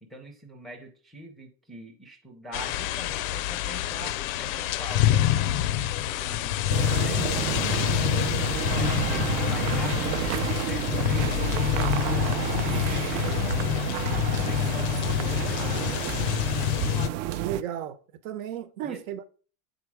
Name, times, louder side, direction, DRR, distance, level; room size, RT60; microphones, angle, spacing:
voice 1, 0.0-5.3 5.7-8.5 8.8-16.2 18.8-19.0, right 1 dB, ahead, 0.5 m, -44 dB
sound 1, 2.5-17.1, left 12 dB, 85° left, 0.6 m, -27 dB
sound 2, 6.7-17.6, right 13 dB, 60° right, 0.5 m, -31 dB
sound 3, 12.8-13.1 13.3-13.4 13.7-14.6 14.9-15.0 15.3-15.7 16.0-18.4, right 9 dB, 35° right, 0.9 m, -49 dB
voice 2, 17.4-18.0 18.2-19.3, right 10 dB, 80° right, 1.0 m, -33 dB
7.2 x 4.0 x 4.7 m
cardioid pair, 165°, 40 cm